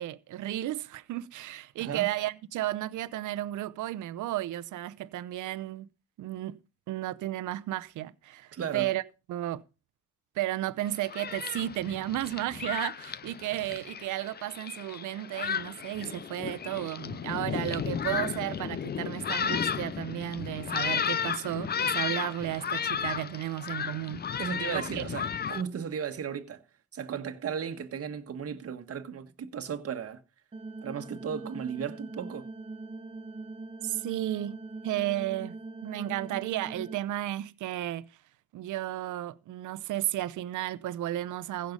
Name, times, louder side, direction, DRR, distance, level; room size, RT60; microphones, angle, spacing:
voice 1, 0.0-5.9 6.2-6.6 6.9-9.0 9.3-9.6 10.3-24.2 24.7-25.0 33.8-34.6 34.8-35.5 35.8-38.1 38.5-41.7, right 14 dB, 80° right, 0.8 m, -33 dB
voice 2, 1.8-2.1 8.5-8.9 24.4-26.6 26.9-30.2 30.8-32.5, right 7 dB, 50° right, 1.6 m, -35 dB
Thunderstorm, 10.8-25.6, left 7 dB, 35° left, 0.6 m, -34 dB
sound 1, 17.5-20.1, left 2 dB, 80° left, 3.4 m, -60 dB
sound 2, 30.5-37.0, right 3 dB, 20° right, 0.9 m, -42 dB
15.5 x 6.7 x 5.4 m
cardioid pair, 90°, 30 cm